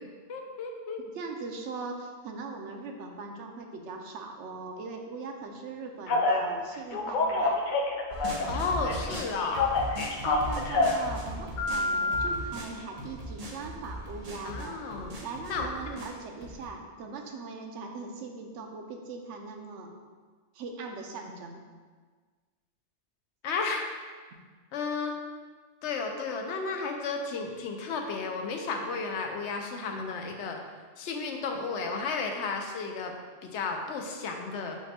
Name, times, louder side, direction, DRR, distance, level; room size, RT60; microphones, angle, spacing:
voice 1, 0.3-1.0 8.5-9.7 14.4-15.1 15.5-15.7 23.4-23.9 24.7-25.1 25.8-30.6 31.0-33.1 33.4-34.8, left 4 dB, 80° left, 3 dB, 0.9 m, -33 dB
voice 2, 1.1-7.6 10.2-14.8 15.2-19.9 20.5-21.6, right 4 dB, 90° right, 3 dB, 0.9 m, -40 dB
Telephone, 6.1-6.4 6.9-8.6 8.8-11.0 11.6-12.3, left 3 dB, 55° left, 0.6 m, -27 dB
sound 1, 8.1-16.7, right 1 dB, 40° right, 0.6 m, -39 dB
5.8 x 2.2 x 4.2 m, 1.5 s
omnidirectional pair, 1.2 m